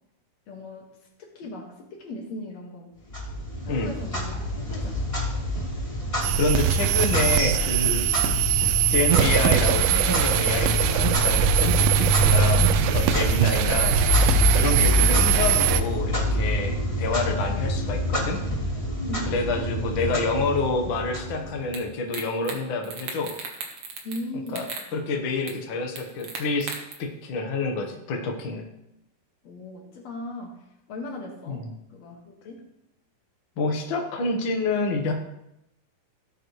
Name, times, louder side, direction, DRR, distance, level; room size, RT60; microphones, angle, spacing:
voice 1, 0.5-0.9 1.3-2.9 3.6-5.1 8.2-8.4 12.4-12.9 13.4-14.0 17.5-17.7 19.1-19.5 24.0-24.7 29.4-32.7, left 1 dB, 50° left, 0 dB, 2.7 m, -39 dB
Clock, 3.1-21.8, left 1 dB, 15° left, 1.2 m, -26 dB
sound 1, 6.2-15.8, right 10 dB, 80° right, 2.4 m, -22 dB
voice 2, 6.4-8.1 8.9-11.9 12.1-14.0 14.5-18.4 19.3-23.3 24.5-24.6 24.9-26.7 27.0-28.6 31.5-31.7 33.6-35.1, left 3 dB, 80° left, 3 dB, 1.1 m, -28 dB
sound 2, 21.7-21.8 22.1-22.6 22.8-24.2 24.5-24.9 25.5-25.6 26.0-26.9, right 5 dB, 50° right, 1.9 m, -35 dB
17.0 x 7.8 x 3.3 m, 0.84 s
omnidirectional pair, 4.3 m